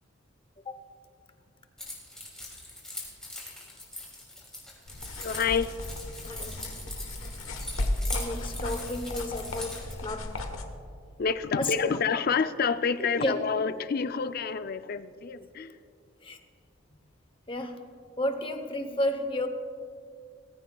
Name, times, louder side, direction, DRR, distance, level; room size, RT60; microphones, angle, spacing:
Keys jangling, 1.8-9.9, left 1 dB, 5° left, 2.6 m, -41 dB
sound 1, 4.9-10.6, left 1 dB, 80° left, 1.2 m, -35 dB
voice 1, 5.2-5.7 11.2-15.8, left 5 dB, 45° left, 12 dB, 0.4 m, -28 dB
voice 2, 6.2-6.6 8.1-10.5 11.6-12.0 13.0-13.4 16.2-16.4 17.5-17.8 18.2-19.5, left 1 dB, 25° left, 8 dB, 0.8 m, -32 dB
19.0 x 15.5 x 2.3 m, 2.3 s
head